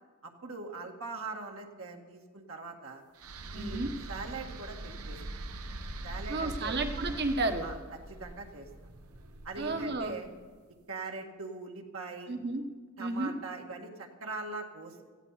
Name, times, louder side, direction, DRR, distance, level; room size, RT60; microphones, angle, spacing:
voice 1, 0.2-3.0 3.5-3.8 4.1-5.2 6.0-6.8 7.6-7.8 8.1-8.7 9.4-10.3 10.9-12.3 13.0-15.0, right 3 dB, 65° right, 1 dB, 1.9 m, -41 dB
sound 1, 3.2-10.4, right 2 dB, 85° right, 1.1 m, -42 dB
voice 2, 3.5-3.9 6.3-7.7 9.5-10.1 12.3-12.6 13.0-13.3, right 2 dB, 50° right, 6 dB, 1.5 m, -32 dB
18.5 x 15.0 x 4.2 m, 1.5 s
head